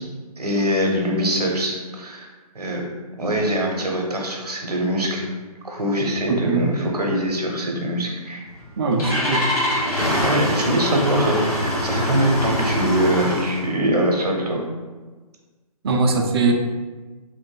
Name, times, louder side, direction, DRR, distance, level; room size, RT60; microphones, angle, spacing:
voice 1, 0.4-2.3 2.5-2.9 3.2-5.3 5.6-8.5 10.2-14.6, right 1 dB, 80° right, 0 dB, 0.7 m, -23 dB
voice 2, 6.3-6.7 8.8-9.4 15.8-16.5, right 3 dB, 40° right, 3 dB, 0.4 m, -21 dB
Engine starting, 8.5-13.7, left 1 dB, 70° left, 1.4 m, -24 dB
3.1 x 2.6 x 2.2 m, 1.3 s
figure-of-eight pair, 135°, 20 cm